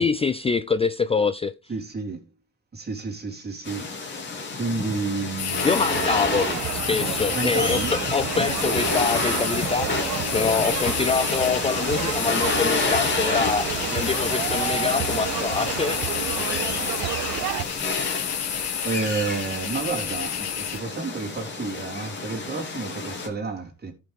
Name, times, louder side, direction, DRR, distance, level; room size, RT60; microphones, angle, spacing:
voice 1, 0.0-1.5 5.6-16.4, left 5 dB, 20° left, 0.4 m, -25 dB
voice 2, 1.7-2.2 2.7-6.6 7.3-8.0 18.8-23.9, right 4 dB, 35° right, 3.5 m, -31 dB
sound 1, 3.6-23.3, left 3 dB, 35° left, 2.6 m, -29 dB
sound 2, 5.4-20.8, left 10 dB, 60° left, 0.9 m, -32 dB
sound 3, 5.9-17.6, right 16 dB, 85° right, 0.5 m, -31 dB
14.0 x 5.9 x 3.6 m
cardioid pair, 90°, 30 cm